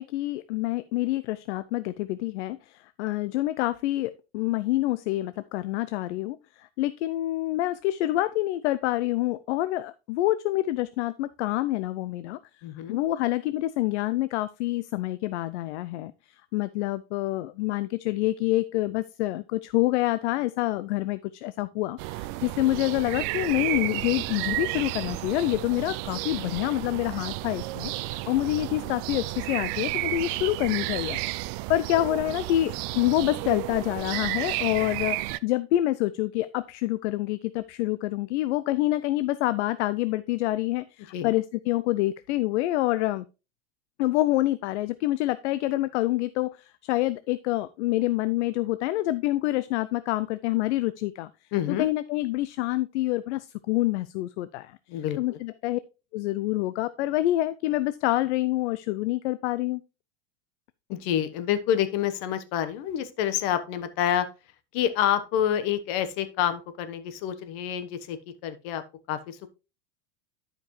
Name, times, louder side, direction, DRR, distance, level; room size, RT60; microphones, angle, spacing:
voice 1, 0.0-12.4 12.9-31.2 31.7-43.3 44.0-51.3 51.7-55.8 56.1-59.8, left 16 dB, 75° left, 14 dB, 0.5 m, -27 dB
voice 2, 12.6-13.0 41.1-41.3 51.5-51.9 54.9-55.4 60.9-64.3 64.7-68.2 68.4-68.8 69.1-69.5, left 10 dB, 60° left, 11 dB, 1.2 m, -28 dB
sound 1, 22.0-35.4, right 19 dB, 50° right, 0.5 m, -32 dB
11.5 x 5.2 x 3.1 m, 0.30 s
supercardioid pair, 125°, 35 cm